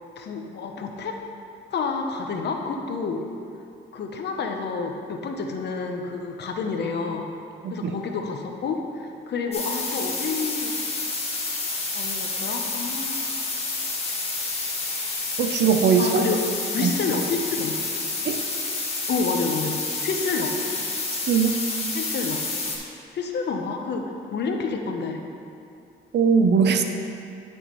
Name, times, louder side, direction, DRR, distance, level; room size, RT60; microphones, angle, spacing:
voice 1, 0.2-1.2 1.7-3.2 3.9-7.3 7.7-10.7 11.9-13.2 16.0-16.4 16.7-17.8 19.1-20.6 21.9-22.4 23.1-25.2, left 4 dB, 60° left, 3 dB, 0.9 m, -29 dB
voice 2, 7.6-7.9 15.4-16.3 16.8-16.9 18.2-18.4 21.3-21.5 26.1-26.8, right 6 dB, 60° right, 7 dB, 0.6 m, -20 dB
sound 1, 9.5-22.8, left 3 dB, 30° left, 1.5 m, -29 dB
9.7 x 6.3 x 3.1 m, 2.6 s
cardioid pair, 90°, 20 cm